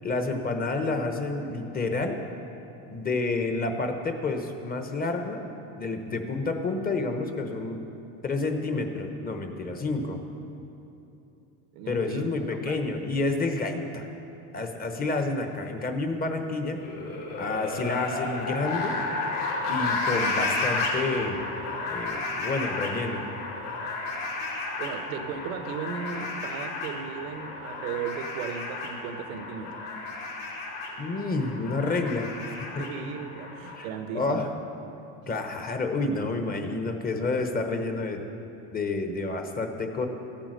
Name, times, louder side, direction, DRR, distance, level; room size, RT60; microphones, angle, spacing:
voice 1, 0.0-2.2 2.9-5.4 5.8-7.8 8.2-10.2 11.9-14.1 14.5-16.8 17.4-19.0 19.7-21.4 21.9-23.2 31.0-32.8 33.7-33.9 34.1-34.5 35.3-38.2 38.7-40.1, left 3 dB, 20° left, 5 dB, 1.1 m, -29 dB
voice 2, 11.7-12.3 12.6-12.9 24.8-29.8 32.8-34.5, right 6 dB, 90° right, 8 dB, 1.1 m, -36 dB
sound 1, 16.7-33.8, left 3 dB, 65° left, 3.2 m, -32 dB
14.5 x 8.8 x 6.4 m, 2.8 s
supercardioid pair, 130°, 40 cm